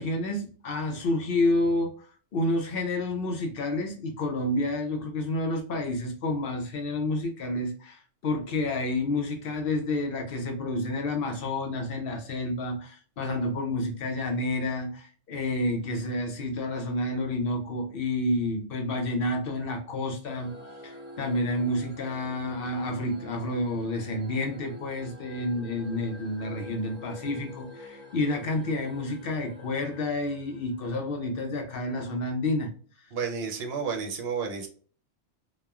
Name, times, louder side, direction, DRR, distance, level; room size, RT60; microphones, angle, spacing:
voice 1, 0.0-2.1 2.3-20.5 20.8-32.7, left 2 dB, 60° left, 4 dB, 0.7 m, -29 dB
sound 1, 20.2-31.2, left 1 dB, 15° right, 0.4 m, -46 dB
voice 2, 33.1-34.7, right 6 dB, 65° right, 3 dB, 0.8 m, -31 dB
3.1 x 2.1 x 2.2 m, 0.42 s
omnidirectional pair, 1.1 m